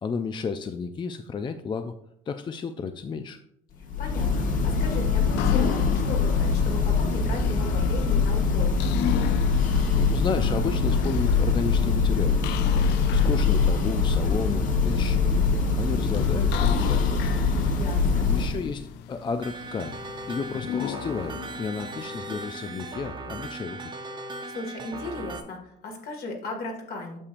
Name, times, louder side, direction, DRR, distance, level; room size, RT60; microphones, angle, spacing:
voice 1, 0.0-1.9 2.3-3.4 9.6-12.5 13.1-15.4 15.8-17.4 18.2-20.0 20.2-23.9, left 5 dB, 30° left, 8 dB, 0.4 m, -32 dB
Church bell, 3.8-18.8, left 4 dB, 50° left, 1.1 m, -23 dB
voice 2, 4.0-8.7 17.7-18.3 24.4-27.2, left 2 dB, 65° left, 1 dB, 2.0 m, -36 dB
sound 1, 5.1-23.0, left 10 dB, 85° left, 0.4 m, -36 dB
sound 2, 19.4-25.4, right 3 dB, 25° right, 0.7 m, -38 dB
8.7 x 6.6 x 2.5 m, 0.75 s
cardioid pair, 110°, 17 cm